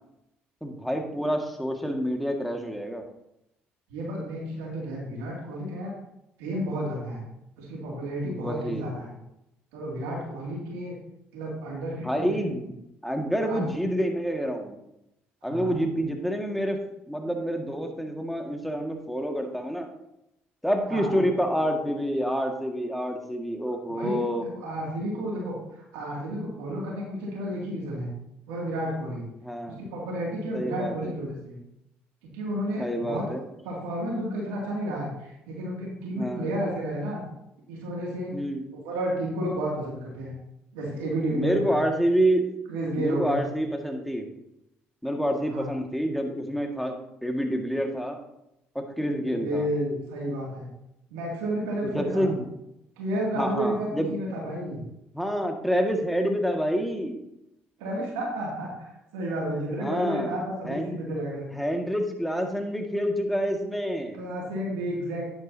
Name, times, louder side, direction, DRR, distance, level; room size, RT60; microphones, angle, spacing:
voice 1, 0.6-3.0 8.2-8.9 12.0-12.7 13.0-14.8 15.4-16.8 17.1-19.9 20.6-24.4 29.4-29.8 30.5-31.1 32.8-33.4 36.2-36.5 38.3-38.6 41.3-42.5 43.0-44.3 45.0-47.0 47.2-48.2 48.8-49.7 51.8-52.5 53.4-54.2 55.1-57.2 59.8-60.9 61.5-64.2, equal, ahead, 3 dB, 1.9 m, -28 dB
voice 2, 3.9-5.9 6.4-7.2 7.6-9.1 9.7-11.0 11.3-12.6 13.5-13.6 15.4-15.8 20.9-21.2 23.9-25.6 25.9-28.1 28.5-29.2 29.7-31.6 32.2-33.2 33.6-37.2 37.7-38.3 38.8-40.3 40.7-41.8 42.7-43.4 45.4-45.7 49.2-50.7 51.1-52.3 53.0-54.8 57.8-61.5 64.1-65.3, right 1 dB, 85° right, -3 dB, 2.5 m, -31 dB
10.0 x 9.6 x 2.8 m, 0.85 s
hypercardioid pair, 55°, 5 cm